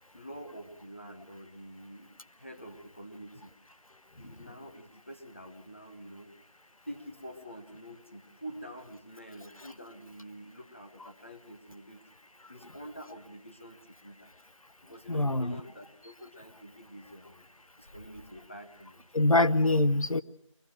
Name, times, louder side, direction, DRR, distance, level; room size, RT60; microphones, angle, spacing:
voice 1, 0.1-3.5 4.2-6.3 6.8-12.0 12.5-14.3 14.9-17.4 17.8-19.0, equal, 25° left, 4 dB, 1.3 m, -47 dB
voice 2, 15.1-15.5 19.1-20.2, left 2 dB, 85° left, 11 dB, 1.0 m, -24 dB
23.5 x 20.5 x 6.2 m, 0.78 s
figure-of-eight pair, 175°, 17 cm